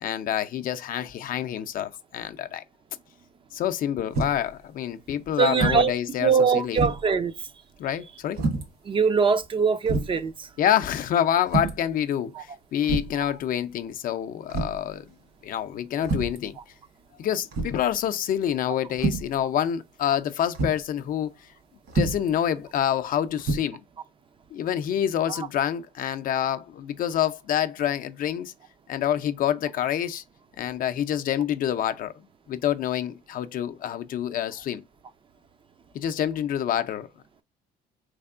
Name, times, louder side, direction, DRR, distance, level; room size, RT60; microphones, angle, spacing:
voice 1, 0.0-2.6 3.5-6.8 7.8-8.4 10.6-15.1 15.4-16.6 17.2-21.3 21.9-23.8 24.5-28.5 28.9-30.2 30.6-32.1 32.5-34.8 35.9-37.1, left 10 dB, 55° left, 0.5 m, -27 dB
sound 1, 4.1-4.5 5.5-5.9 6.3-6.4 6.8-7.2 8.3-8.7 9.4-9.5 9.9-10.2 11.5-11.9 12.8-13.2 14.5-14.9 16.0-16.4 17.5-17.9 18.9-19.3 20.5-20.8 21.9-22.3 23.4-23.6, right 3 dB, 65° right, 1.4 m, -27 dB
voice 2, 5.4-5.9 6.2-7.3 8.9-10.5 12.4-12.5 13.2-13.3, right 6 dB, 30° right, 0.4 m, -22 dB
3.5 x 3.3 x 2.3 m
cardioid pair, 110°, 17 cm